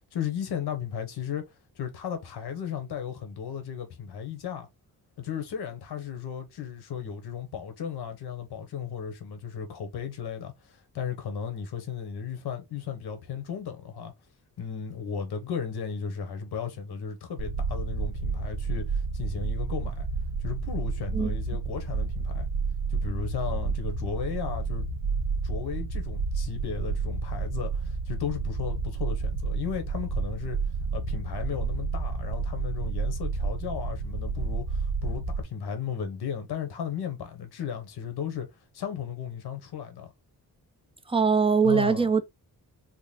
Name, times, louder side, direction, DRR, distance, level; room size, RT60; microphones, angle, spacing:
voice 1, 0.1-4.7 5.2-14.1 14.6-20.1 20.4-22.5 22.9-24.9 25.4-30.6 30.9-38.5 38.7-40.1 41.6-42.1, left 7 dB, 85° left, 1.1 m, -35 dB
sound 1, 17.4-35.4, right 4 dB, 50° right, 0.9 m, -30 dB
voice 2, 41.1-42.2, right 5 dB, 15° right, 0.6 m, -22 dB
3.8 x 2.1 x 3.7 m
cardioid pair, 95°, 38 cm